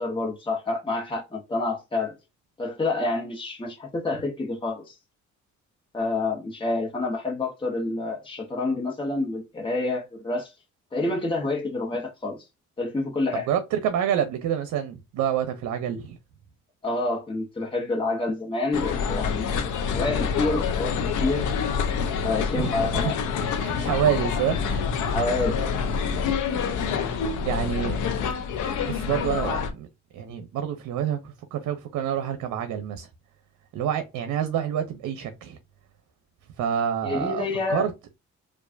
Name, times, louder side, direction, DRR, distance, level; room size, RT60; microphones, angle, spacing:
voice 1, 0.0-2.1 2.6-5.0 5.9-10.5 10.9-12.4 12.8-13.5 16.8-19.6 19.9-21.5 22.2-23.2 25.1-25.6 37.0-37.8, left 2 dB, 15° left, 1.1 m, -28 dB
voice 2, 13.3-16.2 22.6-23.1 23.4-24.8 27.5-28.0 28.8-29.9 30.1-33.1 33.7-35.6 36.6-37.9, right 9 dB, 80° right, 0.7 m, -27 dB
sound 1, 18.7-29.7, left 6 dB, 80° left, 0.8 m, -27 dB
4.6 x 2.5 x 2.5 m
cardioid pair, 90°, 30 cm